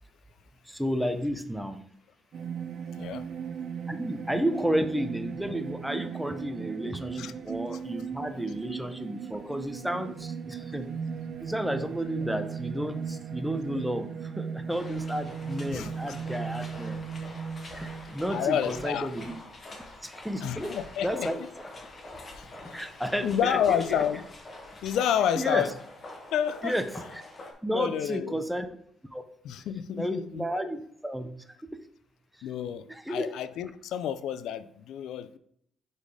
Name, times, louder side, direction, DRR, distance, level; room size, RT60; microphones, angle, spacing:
voice 1, 0.6-1.8 3.9-10.9 11.4-17.0 17.7-19.3 20.0-20.7 21.0-21.4 22.7-24.0 25.4-25.6 26.6-26.9 27.1-27.2 27.6-28.7 29.1-29.2 29.9-31.3 31.7-31.8 32.4-32.5 32.9-33.3, equal, 5° right, 8 dB, 0.7 m, -32 dB
sound 1, 2.3-19.4, right 6 dB, 60° right, 0.5 m, -37 dB
voice 2, 2.9-3.3 7.2-7.3 7.7-7.8 15.7-16.2 18.3-19.1 20.4-21.3 22.0-22.1 22.3-22.8 23.2-24.2 24.8-25.7 26.3-26.8 27.7-28.4 29.4-30.4 32.4-35.4, left 9 dB, 80° left, 13 dB, 0.4 m, -30 dB
sound 2, 14.7-27.5, left 2 dB, 40° left, 1.4 m, -45 dB
5.2 x 4.1 x 4.8 m, 0.68 s
cardioid pair, 90°, 0 cm